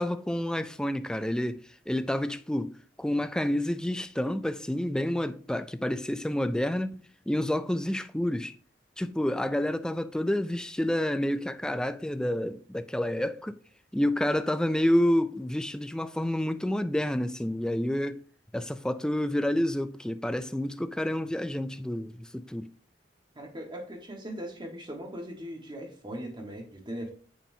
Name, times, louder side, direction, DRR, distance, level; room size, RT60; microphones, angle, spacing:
voice 1, 0.0-2.7 3.0-8.5 9.0-13.6 13.9-18.2 18.5-22.7, left 1 dB, 5° left, 0.3 m, -29 dB
voice 2, 23.4-27.1, equal, 25° right, 1.4 m, -39 dB
9.0 x 4.4 x 2.7 m
head